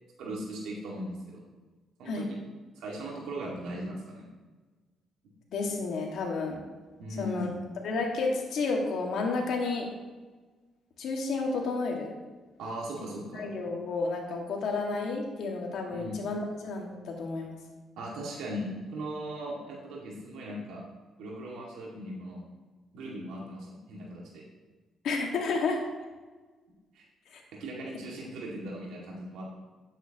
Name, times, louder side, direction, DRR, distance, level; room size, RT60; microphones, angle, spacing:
voice 1, 0.2-1.4 2.0-2.2 2.8-4.2 7.0-7.5 12.6-13.4 15.9-16.2 18.0-20.8 21.2-22.4 22.9-24.4 26.9-27.0 27.6-29.5, right 1 dB, 85° right, -3 dB, 2.1 m, -38 dB
voice 2, 5.5-6.6 7.2-7.5 7.8-9.9 11.0-12.2 13.3-17.6 25.0-25.8 27.3-27.4, left 3 dB, 70° left, 0 dB, 1.9 m, -31 dB
10.0 x 8.4 x 3.0 m, 1.3 s
cardioid pair, 90°, 0 cm